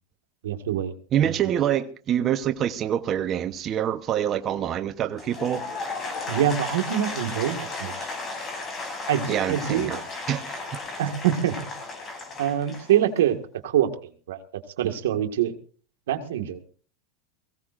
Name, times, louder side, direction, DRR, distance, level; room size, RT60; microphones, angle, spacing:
voice 1, 0.4-0.9 1.2-1.4 6.3-7.9 9.1-9.9 11.0-11.7 12.4-13.4 13.6-13.9 14.3-14.4 14.8-15.5 16.1-16.6, right 10 dB, 85° right, 1.7 m, -24 dB
voice 2, 1.1-5.7 9.3-10.0 10.3-10.6, right 10 dB, 35° right, 0.9 m, -26 dB
Applause / Crowd, 5.1-13.3, left 3 dB, 25° left, 5.9 m, -34 dB
22.5 x 16.0 x 2.5 m
supercardioid pair, 130°, 0 cm